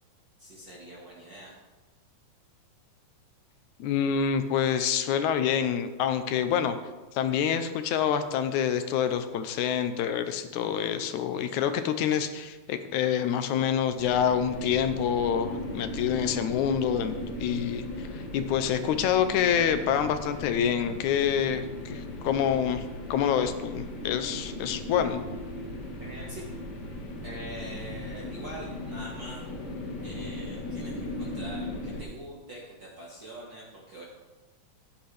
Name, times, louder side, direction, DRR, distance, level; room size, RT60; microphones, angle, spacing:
voice 1, 0.4-1.5 26.0-26.5 27.2-29.5 30.0-34.0, right 1 dB, 40° right, -5 dB, 2.0 m, -44 dB
voice 2, 3.8-6.8 7.1-22.8 23.1-25.2, left 8 dB, 80° left, 9 dB, 2.1 m, -27 dB
sound 1, 14.0-32.0, left 2 dB, 45° left, 1.6 m, -37 dB
14.0 x 10.5 x 3.4 m, 1.2 s
omnidirectional pair, 3.5 m